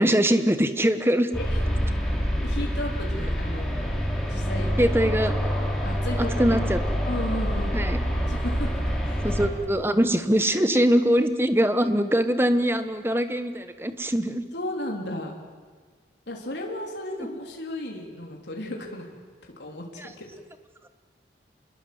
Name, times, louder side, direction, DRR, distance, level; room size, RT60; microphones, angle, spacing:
voice 1, 0.0-1.3 4.8-5.3 6.2-6.8 7.7-8.0 9.2-14.4, equal, 15° right, 10 dB, 1.2 m, -22 dB
sound 1, 1.3-9.5, equal, ahead, 3.9 m, -26 dB
voice 2, 2.4-4.7 5.8-6.6 7.0-7.8 8.3-9.3 10.6-11.0 14.5-15.3 16.3-19.1 19.4-20.3, left 1 dB, 75° left, 0 dB, 3.6 m, -35 dB
27.5 x 21.5 x 8.0 m, 1.5 s
head